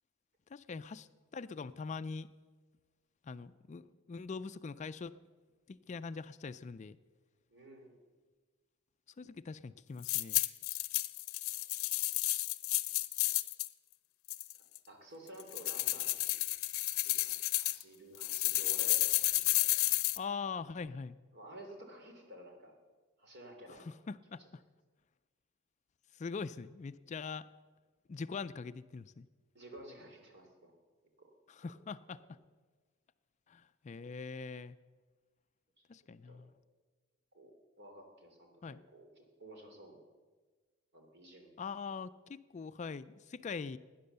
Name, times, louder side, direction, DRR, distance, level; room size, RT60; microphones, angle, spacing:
voice 1, 0.5-1.1 1.3-2.3 3.2-5.1 5.7-7.0 9.2-10.4 20.2-21.2 23.7-24.6 26.1-27.5 28.1-29.3 31.5-32.2 33.5-34.8 35.9-36.5 38.6-38.8 41.6-43.8, left 5 dB, 35° left, 14 dB, 0.3 m, -42 dB
voice 2, 7.5-8.1 11.5-11.6 14.5-16.4 17.0-19.9 21.3-22.7 23.2-23.9 24.4-24.5 29.5-30.7 31.2-31.3 36.3-36.4 37.3-40.0 40.9-41.6, right 1 dB, 55° right, 2 dB, 3.0 m, -53 dB
sound 1, 10.0-13.7 14.3-14.8 15.4-17.8 18.2-20.2, left 18 dB, 90° left, 0.6 m, -32 dB
17.0 x 10.0 x 6.8 m, 1.4 s
head